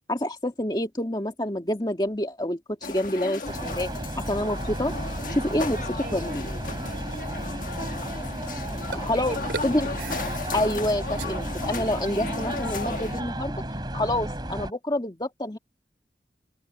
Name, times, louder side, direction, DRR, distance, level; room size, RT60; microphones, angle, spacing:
voice 1, 0.1-3.9 4.2-4.9 5.3-5.8 6.1-6.4 8.9-9.4 9.6-9.9 10.5-13.6 13.9-15.6, left 1 dB, 25° left, 1.9 m, -27 dB
sound 1, 2.8-13.2, left 3 dB, 50° left, 1.6 m, -35 dB
sound 2, 3.4-14.7, right 1 dB, 25° right, 3.7 m, -33 dB
voice 2, 5.3-7.2 8.6-10.0, right 2 dB, 50° right, 7.1 m, -45 dB
sound 3, 5.9-6.7 7.1-7.3 8.9-9.1 9.5-11.3, right 4 dB, 80° right, 3.3 m, -38 dB
open air
head